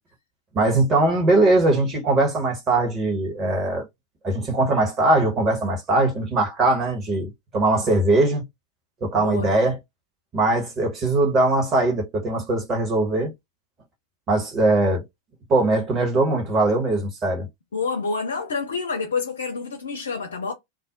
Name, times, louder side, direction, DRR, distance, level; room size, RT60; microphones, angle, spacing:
voice 1, 0.5-3.8 4.2-8.4 9.0-9.8 10.3-13.3 14.3-15.0 15.5-17.5, right 2 dB, 25° right, 1.2 m, -21 dB
voice 2, 9.2-9.5 17.7-20.5, left 4 dB, 70° left, 0.6 m, -28 dB
2.5 x 2.0 x 3.8 m
figure-of-eight pair, 90°, 0 cm